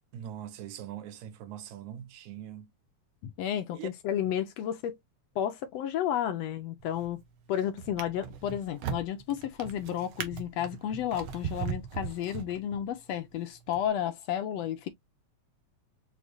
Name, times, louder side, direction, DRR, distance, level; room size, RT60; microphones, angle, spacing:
voice 1, 0.1-2.7 3.7-3.9, right 10 dB, 85° right, 2.2 m, -42 dB
voice 2, 3.2-5.0 5.4-7.2 7.5-14.9, left 10 dB, 75° left, 1.8 m, -32 dB
Drawer open or close, 6.8-7.2 7.8-13.0 13.7-13.8, right 7 dB, 70° right, 1.3 m, -39 dB
6.4 x 2.9 x 2.5 m
omnidirectional pair, 3.3 m